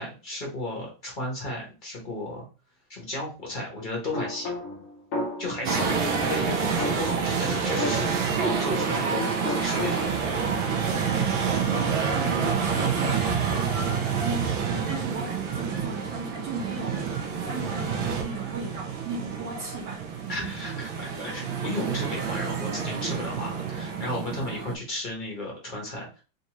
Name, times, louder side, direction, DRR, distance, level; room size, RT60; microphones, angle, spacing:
voice 1, 0.0-2.5 2.9-4.5 5.4-8.1 8.4-10.0 20.3-26.2, left 1 dB, 35° left, 0.9 m, -34 dB
sound 1, 4.1-6.3 6.8-8.9 9.1-10.3, left 2 dB, 65° left, 0.7 m, -34 dB
sound 2, 5.6-24.7, right 6 dB, 85° right, 1.4 m, -28 dB
voice 2, 11.1-20.5, right 4 dB, 65° right, 1.6 m, -36 dB
3.8 x 2.5 x 2.9 m
omnidirectional pair, 2.1 m